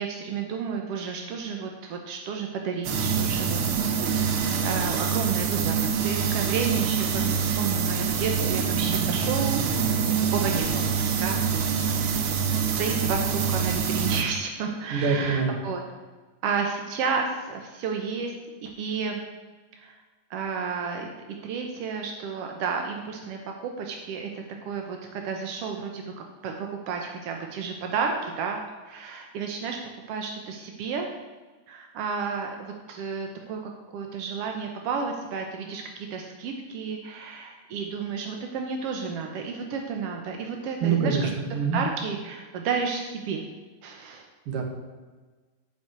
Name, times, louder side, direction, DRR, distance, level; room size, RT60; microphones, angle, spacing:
voice 1, 0.0-10.0 10.3-11.9 12.7-15.8 16.4-18.3 18.6-19.2 19.7-20.0 20.3-21.1 21.4-29.8 30.1-31.1 31.7-41.4 41.7-43.4 43.8-44.3, right 5 dB, 70° right, 3 dB, 1.4 m, -32 dB
sound 1, 2.8-14.2, right 6 dB, 90° right, 1.1 m, -25 dB
voice 2, 14.9-15.5 40.8-41.8 44.5-44.6, right 5 dB, 50° right, 3 dB, 1.9 m, -25 dB
9.2 x 5.8 x 7.8 m, 1.3 s
omnidirectional pair, 3.7 m